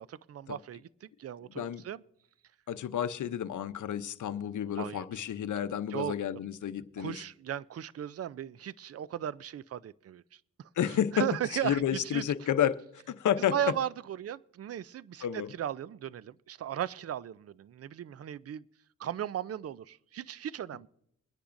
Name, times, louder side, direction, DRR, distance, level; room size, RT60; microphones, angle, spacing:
voice 1, 0.0-2.0 4.8-5.0 5.9-6.2 7.0-10.7 11.1-12.2 13.5-18.6 19.0-20.9, right 10 dB, 50° right, 0.4 m, -36 dB
voice 2, 2.7-7.2 10.8-12.8 13.1-13.6 15.2-15.5, left 9 dB, 70° left, 0.7 m, -31 dB
22.5 x 10.0 x 2.6 m
cardioid pair, 70°, 32 cm